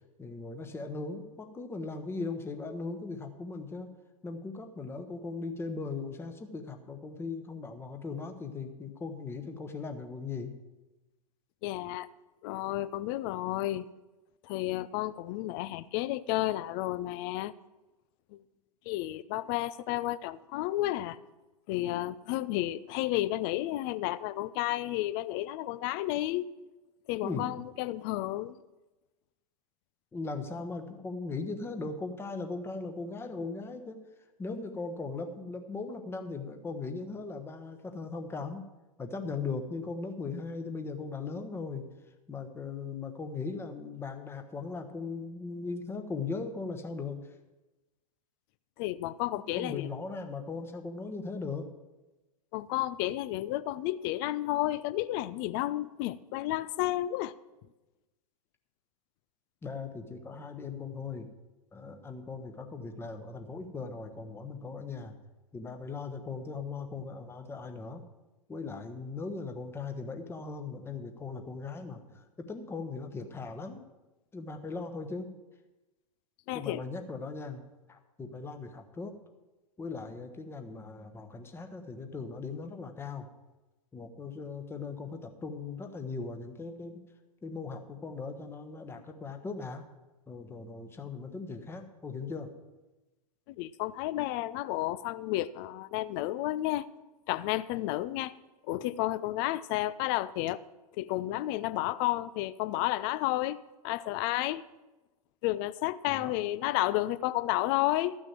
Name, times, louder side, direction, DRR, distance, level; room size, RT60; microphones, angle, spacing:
voice 1, 0.2-3.9 4.2-10.5 27.2-27.5 30.1-34.0 34.4-38.7 39.0-41.9 42.3-47.3 49.3-51.7 59.6-61.3 61.7-65.2 65.5-68.0 68.5-73.8 74.3-75.3 76.5-77.6 77.9-79.1 79.8-83.3 83.9-87.0 87.4-89.8 90.3-92.5 106.1-106.3, left 4 dB, 10° left, 6 dB, 1.1 m, -39 dB
voice 2, 11.6-12.1 12.4-13.9 14.4-17.5 18.3-18.4 18.9-21.2 21.7-26.5 27.1-28.6 48.8-49.9 52.5-57.3 76.5-76.8 93.5-96.9 97.3-98.3 98.7-100.6 101.0-103.6 103.8-104.6 105.4-108.2, left 16 dB, 35° left, 17 dB, 0.5 m, -31 dB
13.5 x 6.3 x 7.4 m, 1.1 s
figure-of-eight pair, 100°, 19 cm